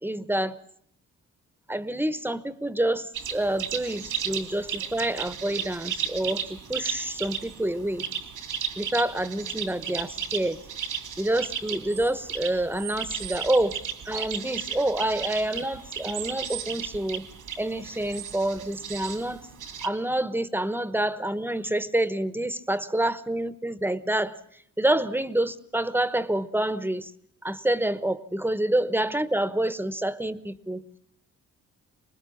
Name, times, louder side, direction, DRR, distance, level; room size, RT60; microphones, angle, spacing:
voice 1, 0.0-0.6 1.7-8.0 8.8-10.6 11.2-17.3 17.6-19.4 19.8-24.4 24.8-27.1 27.4-30.8, right 1 dB, 5° right, 14 dB, 1.0 m, -27 dB
sound 1, 3.1-19.9, right 8 dB, 80° right, 2.3 m, -34 dB
25.5 x 20.5 x 7.2 m, 0.69 s
cardioid pair, 100°, 31 cm